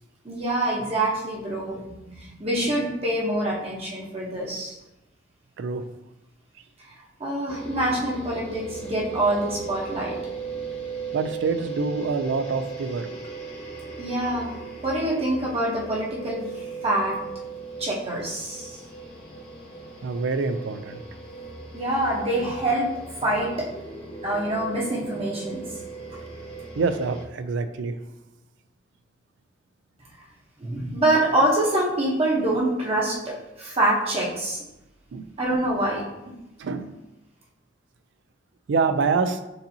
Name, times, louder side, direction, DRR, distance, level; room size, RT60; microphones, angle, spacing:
voice 1, 0.2-4.8 7.2-10.2 14.0-14.5 14.8-17.2 17.8-18.8 21.7-22.9 23.2-23.7 24.2-25.7 30.6-34.6 35.4-36.0, right 1 dB, 35° right, -4 dB, 0.9 m, -25 dB
sound 1, 7.5-27.2, right 5 dB, 30° left, 0.9 m, -37 dB
voice 2, 11.1-13.1 20.0-21.0 26.8-28.0 35.1-35.3 36.6-37.0 38.7-39.4, right 4 dB, 70° right, 9 dB, 0.4 m, -26 dB
6.8 x 2.7 x 2.8 m, 0.95 s
head